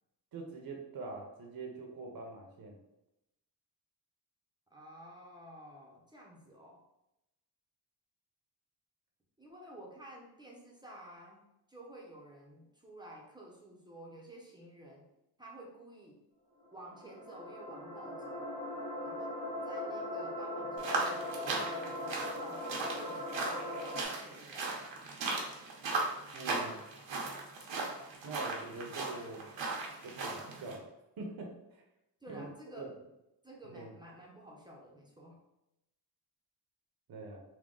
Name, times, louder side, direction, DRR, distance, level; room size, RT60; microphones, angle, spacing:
voice 1, 0.3-2.8 26.3-26.8 28.2-29.5 30.0-30.9 31.2-31.8 32.3-32.4 32.8-32.9 33.7-33.9 37.1-37.4, right 3 dB, 55° right, 1 dB, 0.8 m, -44 dB
voice 2, 4.7-6.8 9.4-15.1 15.4-16.2 16.7-18.5 19.0-25.1 32.2-32.9 33.4-35.4, right 1 dB, 10° right, -2 dB, 0.6 m, -52 dB
sound 1, 16.6-24.0, left 1 dB, 90° left, 1.3 m, -40 dB
sound 2, 20.8-30.8, right 3 dB, 85° right, 0.9 m, -37 dB
3.6 x 2.2 x 3.7 m, 0.88 s
cardioid pair, 110°, 43 cm